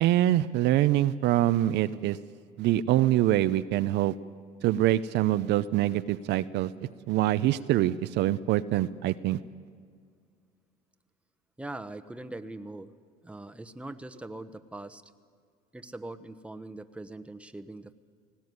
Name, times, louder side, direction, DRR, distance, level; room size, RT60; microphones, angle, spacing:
voice 1, 0.0-2.2 2.6-4.1 4.6-6.7 7.1-9.4, right 14 dB, 65° right, 13 dB, 0.7 m, -24 dB
voice 2, 11.6-12.9 13.2-15.0 15.7-17.9, right 2 dB, 5° right, 9 dB, 1.1 m, -41 dB
18.5 x 17.0 x 9.6 m, 2.1 s
supercardioid pair, 80°, 19 cm